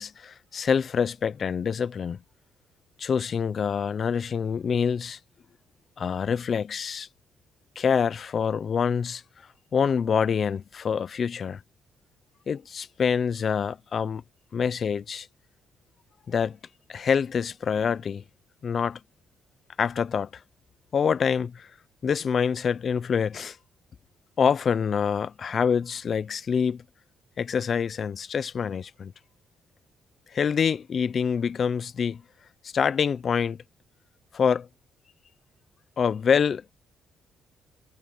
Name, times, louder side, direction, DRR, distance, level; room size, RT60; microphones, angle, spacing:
voice 1, 0.0-2.2 3.0-5.2 6.0-7.1 7.8-9.2 9.7-11.6 12.5-14.2 14.5-15.3 16.3-16.6 16.9-18.2 18.6-19.0 19.8-20.3 20.9-21.7 22.0-23.6 24.4-26.8 27.4-29.1 30.3-32.2 32.6-33.6 34.3-34.7 36.0-36.7, left 6 dB, 50° left, 0.8 m, -26 dB
cardioid pair, 90°, 0 cm